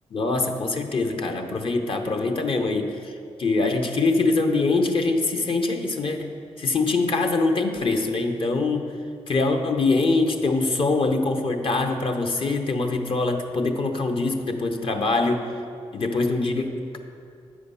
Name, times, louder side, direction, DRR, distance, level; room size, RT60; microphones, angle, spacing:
voice 1, 0.1-3.1 3.4-6.3 6.6-8.9 9.3-15.4 15.9-17.0, left 3 dB, 50° left, 5 dB, 0.9 m, -23 dB
8.1 x 4.9 x 5.5 m, 2.4 s
supercardioid pair, 55°, 11 cm